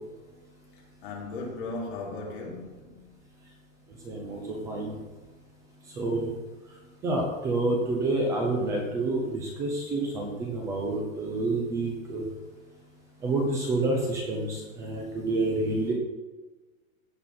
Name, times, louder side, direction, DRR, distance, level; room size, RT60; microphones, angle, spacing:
voice 1, 1.0-3.1, left 3 dB, 40° left, 3.2 m, -37 dB
voice 2, 4.1-5.0 6.0-6.3 7.0-12.2 13.2-15.9, right 2 dB, 10° right, 0.5 m, -28 dB
16.0 x 5.4 x 4.3 m
hypercardioid pair, 160°, 41 cm